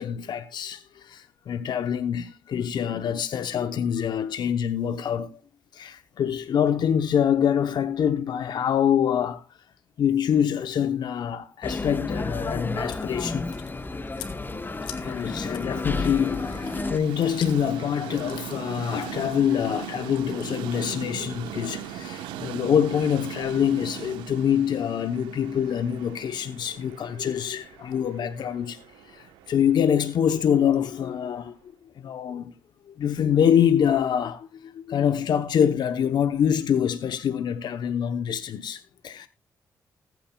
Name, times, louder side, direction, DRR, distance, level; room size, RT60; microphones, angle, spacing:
voice 1, 0.0-5.4 5.7-9.4 10.0-13.5 15.0-31.6 32.0-32.5 32.9-39.3, left 8 dB, 65° left, 0.8 m, -25 dB
sound 1, 11.6-17.0, left 3 dB, 25° left, 1.0 m, -31 dB
Chewing mastication, 12.7-21.5, left 10 dB, 90° left, 1.6 m, -48 dB
Train, 13.4-31.4, right 9 dB, 90° right, 1.0 m, -40 dB
20.0 x 9.2 x 2.3 m
supercardioid pair, 45°, 8 cm